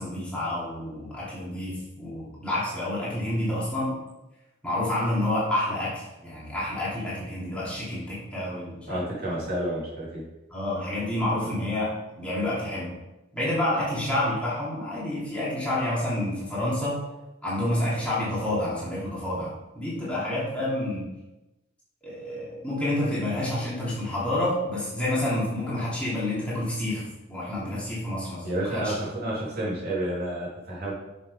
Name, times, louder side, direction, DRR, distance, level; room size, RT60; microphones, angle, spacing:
voice 1, 0.0-4.0 4.6-9.0 10.5-13.0 13.3-17.0 17.4-21.1 22.0-28.9, left 1 dB, 5° left, -9 dB, 3.1 m, -29 dB
voice 2, 8.9-10.2 28.4-30.9, right 1 dB, 50° right, -7 dB, 3.4 m, -30 dB
7.2 x 6.7 x 5.1 m, 1.0 s
head